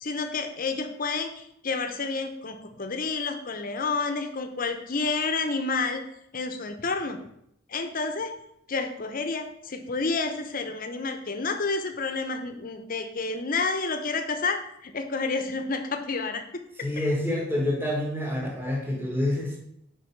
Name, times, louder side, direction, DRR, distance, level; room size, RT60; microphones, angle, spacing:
voice 1, 0.0-6.0 6.3-7.2 7.7-8.3 8.7-16.4, left 4 dB, 45° left, 7 dB, 0.7 m, -29 dB
voice 2, 16.8-19.6, left 1 dB, 10° right, -2 dB, 1.4 m, -27 dB
6.5 x 4.8 x 4.5 m, 0.75 s
head